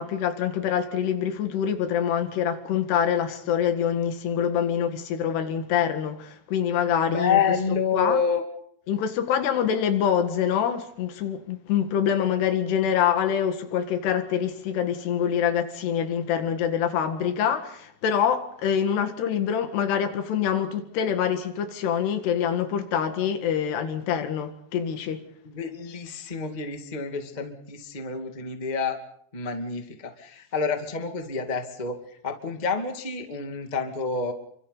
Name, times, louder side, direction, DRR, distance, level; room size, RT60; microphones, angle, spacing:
voice 1, 0.0-7.4 7.9-8.2 8.9-25.2, left 8 dB, 90° left, 3.9 m, -25 dB
voice 2, 7.1-8.4 25.4-29.0 29.3-34.3, left 5 dB, 20° left, 1.3 m, -28 dB
30.0 x 24.5 x 4.1 m
omnidirectional pair, 4.6 m